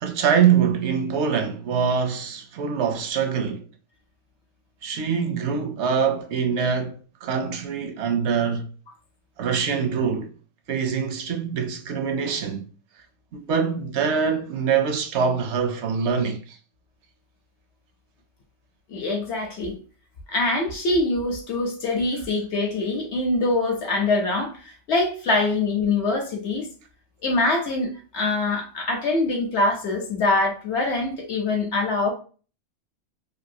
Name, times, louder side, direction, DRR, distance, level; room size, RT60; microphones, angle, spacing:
voice 1, 0.0-3.6 4.8-8.7 9.4-10.3 10.7-12.7 13.3-16.6, right 6 dB, 70° right, 0.8 m, -24 dB
voice 2, 18.9-19.7 20.3-26.7 27.2-32.1, left 2 dB, 65° left, 0.9 m, -24 dB
2.9 x 2.6 x 2.6 m
omnidirectional pair, 1.3 m